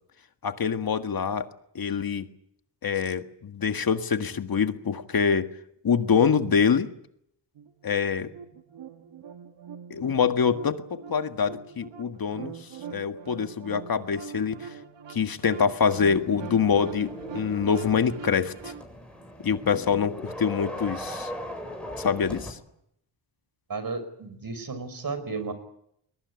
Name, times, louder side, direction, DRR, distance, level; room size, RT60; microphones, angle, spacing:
voice 1, 0.4-1.5 1.8-2.3 2.8-5.5 5.8-6.9 7.8-8.3 9.9-14.7 15.1-18.7 19.4-21.3 22.0-22.6, left 6 dB, 50° left, 8 dB, 1.7 m, -25 dB
sound 1, 7.5-18.8, right 7 dB, 80° right, 2.2 m, -43 dB
sound 2, 15.9-22.5, left 1 dB, ahead, 7.5 m, -39 dB
voice 2, 23.7-25.5, right 4 dB, 50° right, 12 dB, 5.5 m, -33 dB
21.5 x 19.5 x 9.7 m, 0.74 s
cardioid pair, 75°, 44 cm